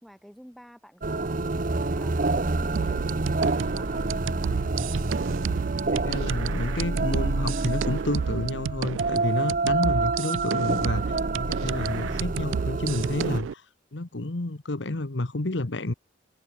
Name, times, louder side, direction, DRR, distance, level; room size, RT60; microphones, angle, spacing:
voice 1, 0.0-3.2 3.7-4.6, equal, ahead, 7.4 m, -49 dB
sound 1, 1.0-13.4, right 3 dB, 45° right, 0.8 m, -28 dB
sound 2, 2.8-13.5, right 7 dB, 90° right, 0.4 m, -32 dB
voice 2, 5.9-13.6 13.9-15.9, left 2 dB, 70° left, 1.2 m, -30 dB
head